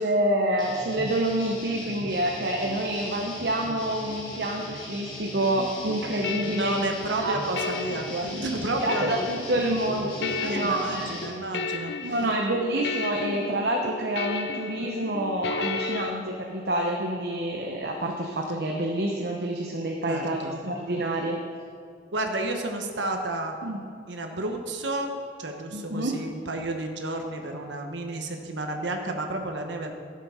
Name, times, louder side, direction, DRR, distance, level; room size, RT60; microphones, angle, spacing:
voice 1, 0.0-6.9 7.2-7.7 8.3-11.2 12.0-21.4 23.6-23.8 25.7-26.1, right 1 dB, 60° right, 0 dB, 1.0 m, -28 dB
sound 1, 0.6-11.3, left 1 dB, 25° left, 3.0 m, -39 dB
sound 2, 5.6-16.1, left 4 dB, 65° left, 0.6 m, -34 dB
voice 2, 6.4-9.4 10.4-12.2 20.1-20.6 22.1-23.6 24.1-29.9, right 2 dB, 80° right, 4 dB, 1.2 m, -31 dB
12.5 x 7.5 x 5.7 m, 2.4 s
head